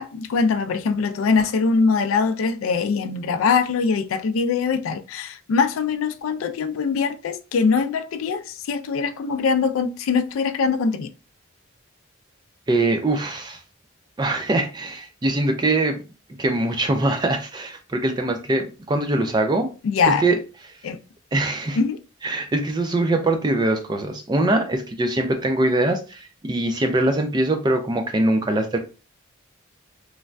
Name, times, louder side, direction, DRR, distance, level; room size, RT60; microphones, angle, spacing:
voice 1, 0.0-11.1 19.8-20.2 20.8-21.0 21.8-22.0, left 5 dB, 85° left, 0.3 m, -22 dB
voice 2, 12.7-13.6 14.2-16.0 16.4-19.7 20.1-20.4 21.3-21.8 22.2-28.8, right 2 dB, 20° right, 0.3 m, -22 dB
3.1 x 2.2 x 2.5 m
head